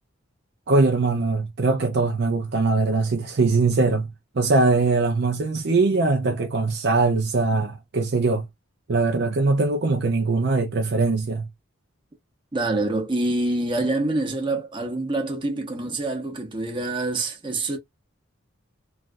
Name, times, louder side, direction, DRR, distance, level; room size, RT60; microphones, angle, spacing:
voice 1, 0.7-8.5 8.9-11.5, right 3 dB, 55° right, 0.5 m, -21 dB
voice 2, 12.5-17.8, right 2 dB, 25° right, 0.8 m, -26 dB
3.2 x 2.3 x 2.5 m
head